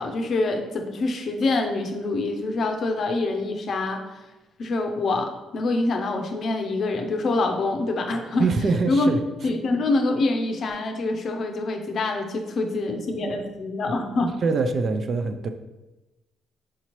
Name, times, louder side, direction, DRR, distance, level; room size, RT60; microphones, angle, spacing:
voice 1, 0.0-4.2 4.6-8.5 8.9-9.1 9.4-14.3, left 2 dB, 55° left, 4 dB, 0.6 m, -25 dB
voice 2, 8.4-9.2 14.4-15.5, right 4 dB, 45° right, 7 dB, 0.3 m, -23 dB
4.9 x 2.8 x 3.0 m, 1.0 s
cardioid pair, 100°, 0 cm